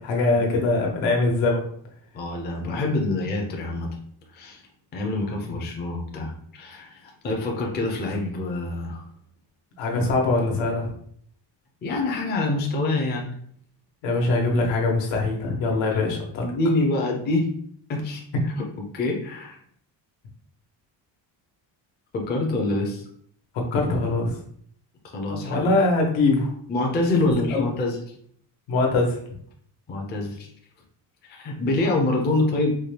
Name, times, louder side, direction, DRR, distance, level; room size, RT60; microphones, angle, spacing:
voice 1, 0.0-1.6 5.5-5.6 9.8-10.9 14.0-16.5 23.7-24.3 25.3-26.5 27.5-27.6 28.7-29.2, left 2 dB, 90° left, 0 dB, 1.2 m, -22 dB
voice 2, 2.1-3.9 4.3-4.6 4.9-9.1 11.8-13.3 15.9-16.0 16.4-17.5 17.9-18.2 18.9-19.6 22.1-23.1 25.0-25.7 26.7-28.0 29.9-30.5 31.3-32.7, left 2 dB, 25° left, 0 dB, 0.5 m, -26 dB
4.4 x 2.2 x 3.2 m, 0.63 s
cardioid pair, 170°, 45 cm